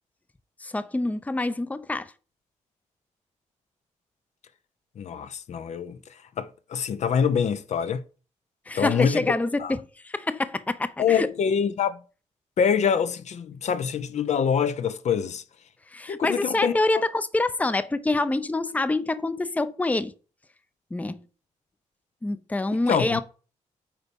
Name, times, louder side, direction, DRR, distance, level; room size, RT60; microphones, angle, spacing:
voice 1, 0.6-2.1 8.7-9.8 10.0-11.3 15.9-20.1 20.9-21.2 22.2-23.2, left 2 dB, 10° left, 0.6 m, -26 dB
voice 2, 5.0-8.0 8.8-9.2 9.6-9.7 11.0-12.0 12.6-15.4 16.1-16.8 22.9-23.2, left 7 dB, 65° left, 0.8 m, -25 dB
8.7 x 4.2 x 5.3 m
cardioid pair, 80°, 13 cm